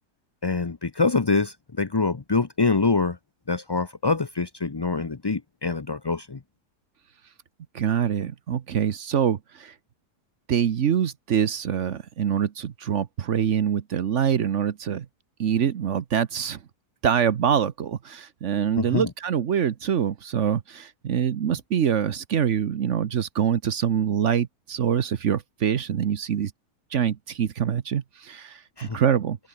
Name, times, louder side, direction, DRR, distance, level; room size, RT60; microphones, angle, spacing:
voice 1, 0.4-3.2 3.5-6.4 18.8-19.1 28.8-29.0, left 4 dB, 35° left, 0.3 m, -25 dB
voice 2, 7.7-9.7 10.5-15.1 15.4-16.6 17.0-26.5 26.9-29.4, right 8 dB, 55° right, 1.1 m, -25 dB
open air
omnidirectional pair, 1.7 m